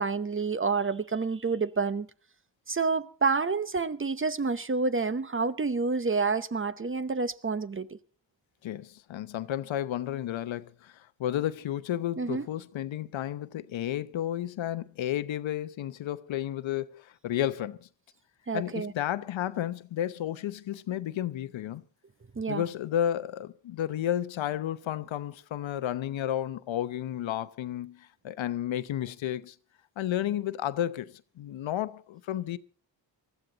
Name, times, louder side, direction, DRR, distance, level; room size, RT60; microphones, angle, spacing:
voice 1, 0.0-2.1 2.7-7.9 12.2-12.5 18.5-18.9 22.4-22.6, right 4 dB, 25° right, 0.8 m, -28 dB
voice 2, 8.6-17.9 18.5-21.8 22.5-29.5 30.0-32.6, left 11 dB, 80° left, 0.9 m, -32 dB
20.0 x 14.0 x 4.0 m
cardioid pair, 75°, 46 cm